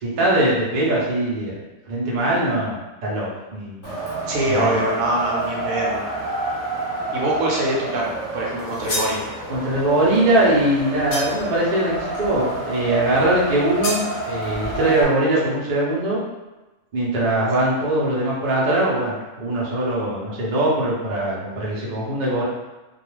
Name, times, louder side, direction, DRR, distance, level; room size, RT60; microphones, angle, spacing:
voice 1, 0.0-1.6 1.9-3.9 4.5-4.8 9.5-16.2 16.9-22.4, right 1 dB, 50° right, -5 dB, 0.5 m, -21 dB
Wind, 3.8-15.0, right 2 dB, 20° left, 0.5 m, -29 dB
voice 2, 4.3-6.1 7.1-9.2, right 1 dB, 70° right, -3 dB, 1.0 m, -23 dB
sound 1, 8.6-9.2 11.1-11.6 13.8-14.1, left 1 dB, 65° left, 0.6 m, -28 dB
2.3 x 2.3 x 3.1 m, 1.1 s
omnidirectional pair, 1.6 m